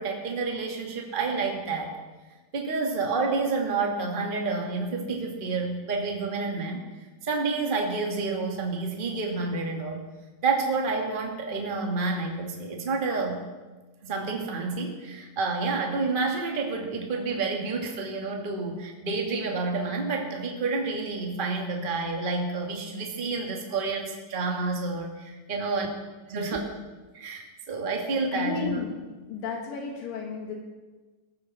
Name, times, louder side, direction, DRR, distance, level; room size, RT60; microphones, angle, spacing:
voice 1, 0.0-1.9 2.5-6.8 7.2-10.0 10.4-13.4 14.0-25.9 26.3-26.6 27.1-28.8, right 3 dB, 20° right, 0 dB, 1.5 m, -29 dB
voice 2, 28.3-28.9 29.3-30.6, left 5 dB, 75° left, 0 dB, 3.3 m, -32 dB
21.0 x 14.5 x 4.2 m, 1.3 s
omnidirectional pair, 4.0 m